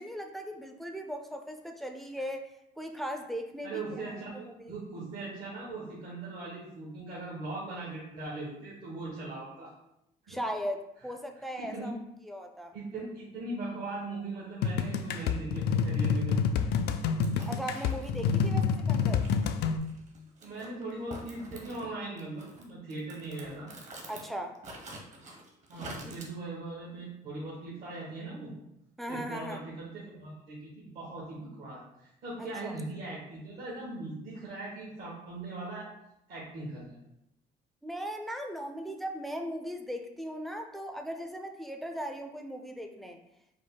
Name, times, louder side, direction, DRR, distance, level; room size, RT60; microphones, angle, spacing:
voice 1, 0.0-2.5 2.8-4.7 10.3-12.0 12.2-12.7 17.5-19.2 24.1-24.6 26.0-26.2 29.0-29.6 32.6-32.7 37.8-43.2, equal, ahead, 4 dB, 0.4 m, -38 dB
voice 2, 3.6-9.7 10.2-10.4 11.5-12.0 12.7-16.4 20.4-23.7 25.7-28.5 29.1-35.9 36.3-37.0, right 2 dB, 70° right, -7 dB, 1.4 m, -40 dB
sound 1, 14.6-19.8, left 6 dB, 75° left, 0.4 m, -28 dB
sound 2, 17.0-18.5 19.2-21.9 22.2-24.3 24.5-26.3, right 2 dB, 45° right, 1.0 m, -46 dB
5.1 x 2.1 x 3.9 m, 0.83 s
cardioid pair, 110°, 17 cm